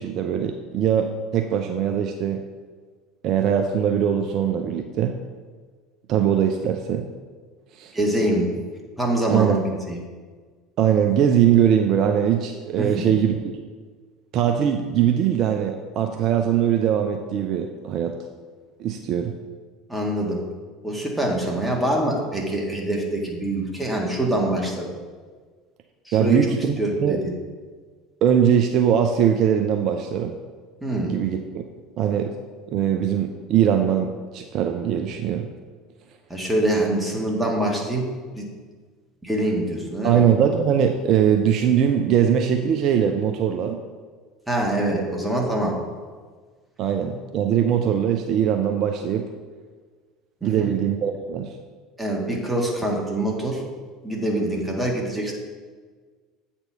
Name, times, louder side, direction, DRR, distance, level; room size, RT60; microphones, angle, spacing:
voice 1, 0.0-2.4 3.2-5.2 6.1-7.0 7.7-7.9 9.3-9.6 10.8-13.5 14.3-18.2 18.8-19.3 26.1-26.7 27.0-27.2 28.2-30.3 31.1-31.6 32.0-32.3 32.7-35.5 40.0-43.8 46.8-49.3 50.4-51.5, right 9 dB, 50° right, 5 dB, 0.5 m, -21 dB
voice 2, 7.9-8.5 9.0-10.0 12.8-13.2 19.9-20.4 20.8-24.9 26.1-26.5 26.8-27.3 30.8-31.2 36.3-38.1 38.4-38.5 39.2-40.2 44.5-45.8 50.4-50.7 52.0-53.6 54.0-55.3, right 1 dB, 5° right, -1 dB, 1.8 m, -24 dB
7.9 x 4.3 x 5.6 m, 1.5 s
figure-of-eight pair, 70°, 0 cm